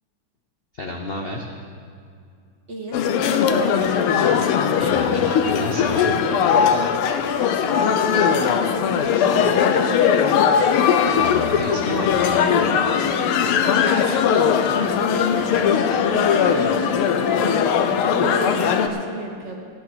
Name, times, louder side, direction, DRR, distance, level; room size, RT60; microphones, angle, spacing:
voice 1, 0.7-1.5 4.8-6.2 11.2-12.4, left 2 dB, 75° left, 1 dB, 0.5 m, -30 dB
voice 2, 2.7-4.0 7.4-9.7 13.6-17.6 18.1-19.6, right 1 dB, 40° right, 1 dB, 1.2 m, -33 dB
sound 1, 2.9-18.9, left 7 dB, 90° left, 1.6 m, -19 dB
14.0 x 9.5 x 6.1 m, 2.3 s
omnidirectional pair, 2.4 m